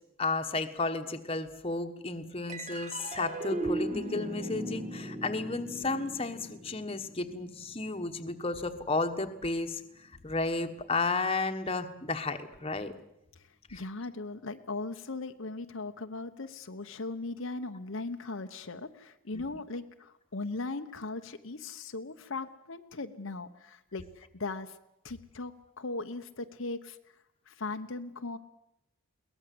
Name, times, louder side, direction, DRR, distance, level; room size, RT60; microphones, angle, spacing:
voice 1, 0.2-12.9 13.7-13.8 19.3-19.4, left 3 dB, 25° left, 6 dB, 1.3 m, -33 dB
sound 1, 2.5-9.2, right 1 dB, 30° right, 1.6 m, -38 dB
voice 2, 13.4-24.8 25.0-27.0 27.5-28.4, left 3 dB, 65° left, 6 dB, 1.0 m, -38 dB
22.0 x 18.0 x 7.8 m, 0.83 s
head